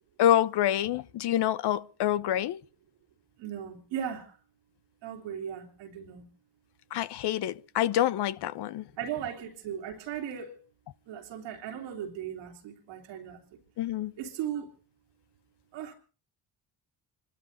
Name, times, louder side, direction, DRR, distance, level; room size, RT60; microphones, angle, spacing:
voice 1, 0.2-2.6 6.9-8.8 13.8-14.1, left 11 dB, 65° left, 0.9 m, -27 dB
voice 2, 3.4-4.3 5.0-6.3 9.0-10.6 11.1-13.4 14.2-14.7 15.7-15.9, right 9 dB, 90° right, 3.0 m, -37 dB
26.0 x 12.5 x 4.0 m
supercardioid pair, 65°, 43 cm